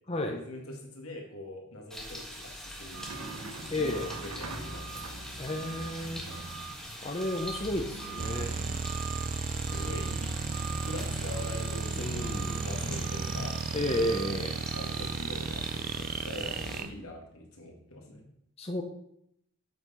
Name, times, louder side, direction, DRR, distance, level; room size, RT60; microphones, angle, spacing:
voice 1, 0.1-5.1 5.7-5.9 6.3-6.4 9.6-10.2 10.7-13.6 14.3-14.4 14.7-18.3, left 1 dB, 75° left, 1 dB, 2.0 m, -43 dB
sound 1, 1.9-16.8, equal, 5° left, 1.4 m, -44 dB
sound 2, 2.9-16.9, right 3 dB, 80° right, 1.1 m, -43 dB
voice 2, 3.7-4.1 5.4-6.2 7.0-8.5 12.0-12.7 13.7-14.6 18.6-18.8, left 1 dB, 30° left, 2 dB, 0.8 m, -32 dB
sound 3, 8.2-16.9, right 4 dB, 40° right, 0.4 m, -34 dB
7.8 x 5.8 x 5.7 m, 0.73 s
head